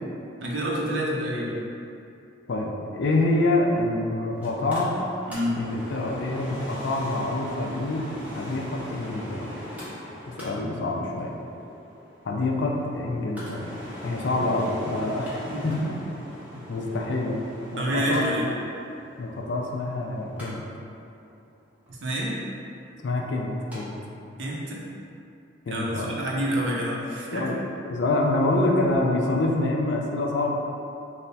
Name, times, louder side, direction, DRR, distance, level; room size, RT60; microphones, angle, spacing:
voice 1, 0.4-1.6 5.3-5.6 15.5-15.9 17.8-18.5 21.9-22.3 24.4-24.8 25.7-27.5, equal, 65° right, -4 dB, 0.6 m, -28 dB
voice 2, 2.5-5.0 5.6-8.1 8.3-9.5 10.4-11.3 12.2-13.7 14.0-16.0 16.7-17.4 17.7-18.2 19.2-20.7 23.0-23.9 25.7-26.1 27.3-27.6 27.8-30.6, left 2 dB, 60° left, 0 dB, 0.4 m, -26 dB
Mechanical fan, 4.4-23.8 24.1-24.2, equal, 5° right, 0.6 m, -41 dB
3.3 x 2.1 x 4.0 m, 2.7 s
head